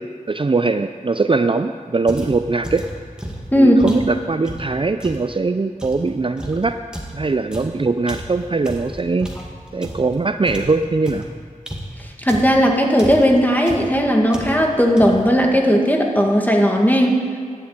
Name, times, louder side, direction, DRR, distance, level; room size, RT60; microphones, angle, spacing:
voice 1, 0.0-2.8 3.6-6.8 7.1-9.3 9.7-11.3, right 3 dB, 35° right, 9 dB, 0.4 m, -21 dB
sound 1, 2.1-5.3 5.8-10.2 10.4-12.7 13.0-13.4 13.7-14.0 14.3-14.7 15.0-15.4, equal, 5° right, 2.2 m, -33 dB
voice 2, 12.2-17.2, equal, 10° left, 0 dB, 2.1 m, -16 dB
12.0 x 7.9 x 8.9 m, 2.1 s
wide cardioid pair, 50°, 15 cm